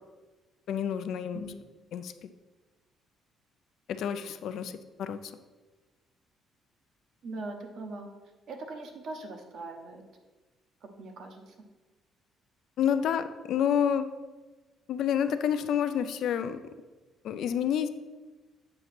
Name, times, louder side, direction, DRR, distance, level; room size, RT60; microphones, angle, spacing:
voice 1, 0.7-1.4 1.9-2.3 3.9-4.7 5.0-5.3 12.8-14.1 14.9-16.6 17.2-17.9, left 8 dB, 65° left, 10 dB, 0.4 m, -29 dB
voice 2, 7.2-8.1 8.5-10.0 11.0-11.4, right 2 dB, 60° right, 4 dB, 1.0 m, -40 dB
7.7 x 3.1 x 5.9 m, 1.3 s
cardioid pair, 140°, 0 cm